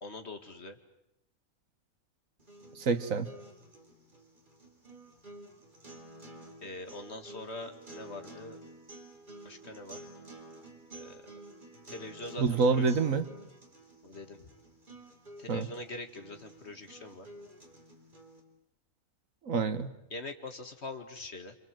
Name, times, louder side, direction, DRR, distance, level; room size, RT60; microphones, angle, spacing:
voice 1, 0.0-0.8 6.6-8.6 9.4-10.0 10.9-11.2 11.9-12.9 14.0-14.5 15.4-17.3 20.1-21.6, left 2 dB, 50° left, 6 dB, 2.3 m, -43 dB
sound 1, 2.4-18.4, right 2 dB, 35° right, 4.0 m, -51 dB
voice 2, 2.8-3.3 12.4-13.3 15.5-15.7 19.4-19.9, right 4 dB, 70° right, 10 dB, 1.7 m, -27 dB
27.5 x 27.5 x 7.7 m, 0.81 s
omnidirectional pair, 1.5 m